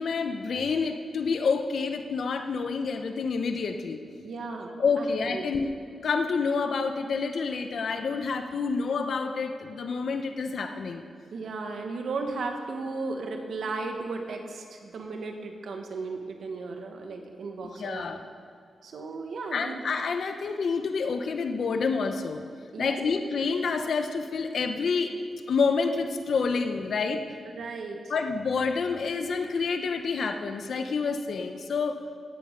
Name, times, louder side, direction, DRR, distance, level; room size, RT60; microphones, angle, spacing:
voice 1, 0.0-4.0 4.8-5.7 6.0-11.0 17.8-18.2 19.5-22.4 22.8-25.2 25.5-27.2 28.1-32.0, left 5 dB, 70° left, 6 dB, 0.9 m, -28 dB
voice 2, 4.2-5.7 11.3-18.0 18.8-19.8 22.7-23.0 27.5-28.1, right 3 dB, 75° right, 3 dB, 1.5 m, -35 dB
17.5 x 8.6 x 5.2 m, 2.2 s
cardioid pair, 70°, 0 cm